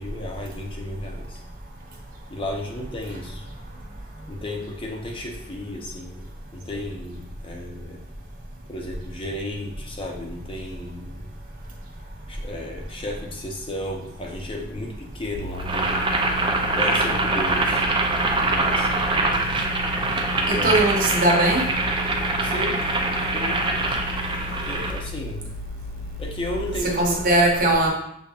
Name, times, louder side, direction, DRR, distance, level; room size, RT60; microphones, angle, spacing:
voice 1, 0.0-1.4 2.3-3.4 4.3-8.0 8.7-11.3 12.3-16.0 16.7-17.9 18.4-18.9 20.3-20.9 22.4-22.8 23.1-23.7 24.6-25.5 26.2-27.2, left 1 dB, 25° left, 0 dB, 0.7 m, -33 dB
sound 1, 15.3-26.8, left 4 dB, 75° left, 0.4 m, -37 dB
Boiling, 15.6-25.0, right 2 dB, 25° right, 0.5 m, -24 dB
voice 2, 20.5-21.6 27.0-27.9, right 2 dB, 45° right, -1 dB, 1.0 m, -19 dB
6.7 x 2.8 x 2.4 m, 0.74 s
head